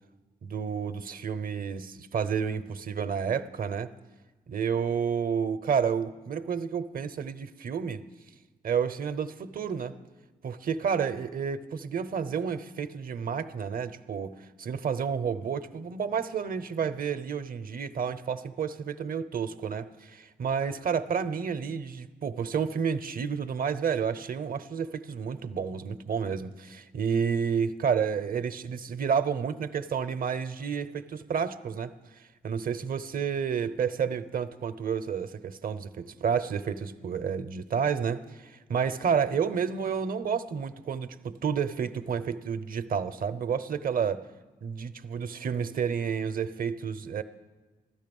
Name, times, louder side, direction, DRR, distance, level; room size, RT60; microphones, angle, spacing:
voice 1, 0.4-3.9 4.5-8.0 8.6-9.9 10.4-44.2 44.6-47.2, right 6 dB, 60° right, 11 dB, 0.7 m, -30 dB
15.0 x 12.0 x 5.4 m, 1.2 s
supercardioid pair, 50°, 17 cm